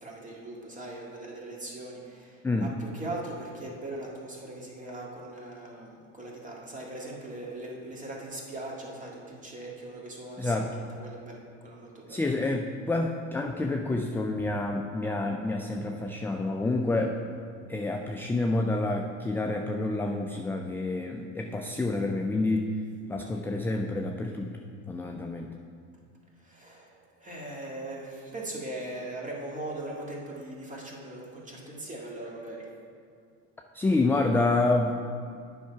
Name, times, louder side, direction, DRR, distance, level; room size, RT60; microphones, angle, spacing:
voice 1, 0.0-12.2 26.4-32.7, right 2 dB, 20° right, -2 dB, 1.9 m, -40 dB
voice 2, 10.4-10.7 12.1-17.2 17.7-22.7 23.1-24.6 24.9-25.5 33.7-35.0, left 2 dB, 5° left, 2 dB, 0.3 m, -28 dB
8.6 x 5.7 x 4.6 m, 2.3 s
hypercardioid pair, 85°, 36 cm